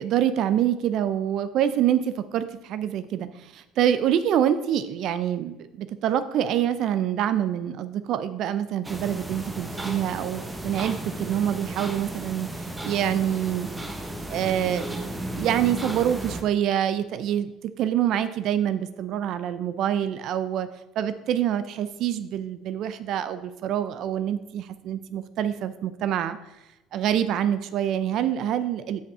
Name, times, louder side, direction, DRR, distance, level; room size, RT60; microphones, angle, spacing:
voice 1, 0.0-13.7 14.3-14.8 15.3-17.5 17.8-20.7 21.0-26.4 26.9-29.0, right 10 dB, 55° right, 12 dB, 0.6 m, -26 dB
sound 1, 8.8-16.4, right 1 dB, 10° right, 1.1 m, -34 dB
9.1 x 5.4 x 5.5 m, 0.96 s
cardioid pair, 120°, 0 cm